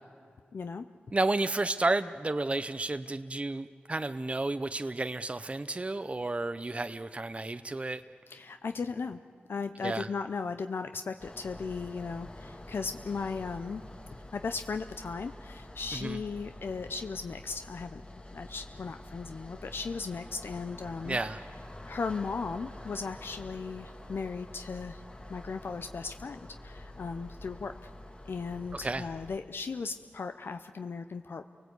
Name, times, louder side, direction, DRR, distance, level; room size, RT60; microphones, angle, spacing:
voice 1, 0.5-0.9 8.3-9.2 9.5-13.8 14.3-18.0 18.3-21.2 21.9-25.0 25.3-27.9 28.3-31.4, left 4 dB, 75° left, 8 dB, 0.7 m, -37 dB
voice 2, 1.1-8.0 9.8-10.1 15.9-16.2 21.0-21.4 28.7-29.0, right 2 dB, 30° right, 10 dB, 0.6 m, -31 dB
sound 1, 11.2-29.4, left 1 dB, 25° left, 1.8 m, -47 dB
28.0 x 19.0 x 8.2 m, 2.2 s
cardioid pair, 50°, 4 cm